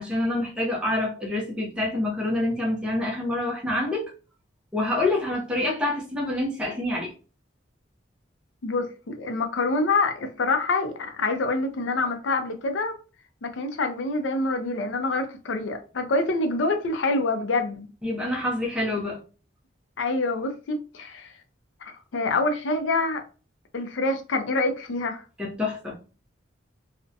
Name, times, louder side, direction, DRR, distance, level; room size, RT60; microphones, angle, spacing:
voice 1, 0.0-4.1 4.7-7.1 18.0-19.2 25.4-26.0, left 1 dB, 5° right, 0.5 m, -27 dB
voice 2, 8.6-12.9 13.4-17.9 20.0-21.3 21.8-23.2 23.7-25.2, left 3 dB, 80° left, 0.5 m, -26 dB
2.5 x 2.1 x 2.5 m
head